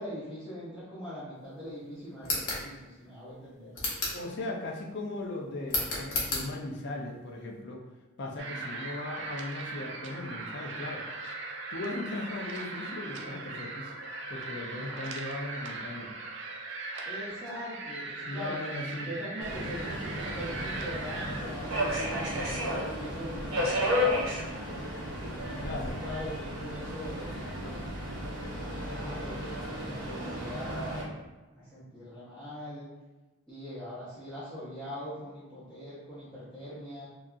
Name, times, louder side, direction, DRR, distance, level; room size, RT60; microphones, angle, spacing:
voice 1, 0.0-3.7 8.3-8.6 17.1-18.7 19.1-24.5 25.4-27.8 28.7-31.1 31.6-32.9 33.5-37.1, equal, ahead, -14 dB, 0.6 m, -42 dB
sound 1, 2.2-2.6 3.7-4.2 5.7-6.5, left 2 dB, 80° left, 0.8 m, -31 dB
voice 2, 4.1-7.8 8.2-11.0 11.7-14.0 14.3-16.1 18.3-19.1 25.4-26.0, left 2 dB, 50° left, -1 dB, 0.4 m, -38 dB
sound 2, 8.4-21.4, right 3 dB, 55° right, 0.3 m, -39 dB
Subway metro underground, 19.4-31.0, equal, 90° right, 0.7 m, -33 dB
2.7 x 2.3 x 2.3 m, 1.2 s
head